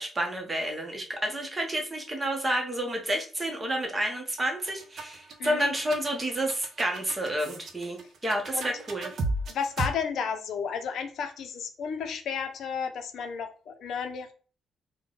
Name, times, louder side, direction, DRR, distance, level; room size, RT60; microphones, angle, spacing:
voice 1, 0.0-9.1, right 1 dB, 15° right, 0.8 m, -30 dB
sound 1, 4.4-9.9, right 2 dB, 55° right, 0.6 m, -35 dB
voice 2, 9.5-14.3, left 6 dB, 70° left, 0.5 m, -33 dB
3.7 x 2.2 x 3.7 m
cardioid pair, 135°, 0 cm